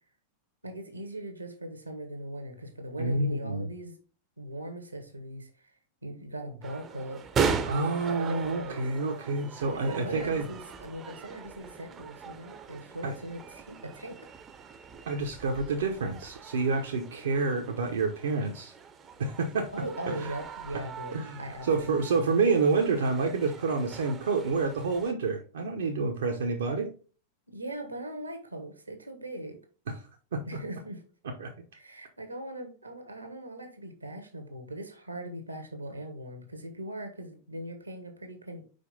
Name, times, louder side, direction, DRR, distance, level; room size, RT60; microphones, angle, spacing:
voice 1, 0.6-4.0 4.4-5.5 6.0-7.2 7.7-8.9 9.7-14.2 19.7-22.2 27.5-29.6 30.5-31.0 31.7-38.6, right 1 dB, 85° right, 6 dB, 1.2 m, -40 dB
voice 2, 3.0-3.7 7.7-10.5 13.0-13.1 15.1-18.7 19.2-19.7 20.1-20.3 21.1-26.9 29.9-30.0 30.3-30.4 31.4-31.5, right 4 dB, 65° right, 3 dB, 0.8 m, -28 dB
sound 1, 6.6-25.1, right 6 dB, 25° right, 0.7 m, -39 dB
5.1 x 4.8 x 3.9 m, 0.38 s
figure-of-eight pair, 90°, 0 cm